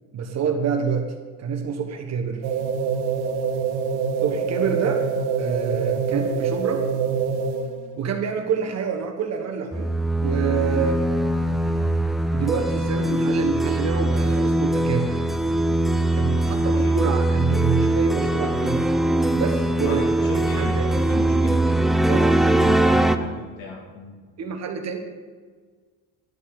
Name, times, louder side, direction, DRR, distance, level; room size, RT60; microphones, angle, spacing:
voice 1, 0.1-1.1 1.4-2.4 4.2-5.1 5.4-6.9 8.0-9.9 10.2-11.0 12.3-15.3 16.1-18.8 19.3-21.0 22.1-22.3 24.4-25.0, right 6 dB, 50° right, 4 dB, 1.3 m, -27 dB
sound 1, 2.4-7.9, right 6 dB, 85° right, 1.2 m, -25 dB
sound 2, 9.7-23.2, right 1 dB, ahead, 0.4 m, -21 dB
voice 2, 16.7-17.1 19.8-24.1, left 2 dB, 70° left, 0 dB, 2.5 m, -34 dB
11.0 x 5.6 x 6.4 m, 1.5 s
supercardioid pair, 90°, 35 cm